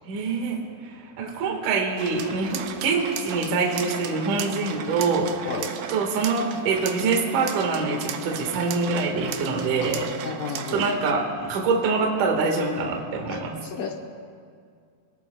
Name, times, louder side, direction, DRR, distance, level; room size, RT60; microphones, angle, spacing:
voice 1, 0.1-0.6 1.2-5.5 5.9-10.1 10.7-13.6, right 4 dB, 55° right, 1 dB, 2.7 m, -25 dB
sound 1, 2.0-11.1, right 9 dB, 80° right, 2.2 m, -35 dB
voice 2, 9.8-10.8 13.3-13.9, left 6 dB, 75° left, 1 dB, 2.1 m, -33 dB
25.5 x 19.0 x 2.3 m, 2.2 s
omnidirectional pair, 4.9 m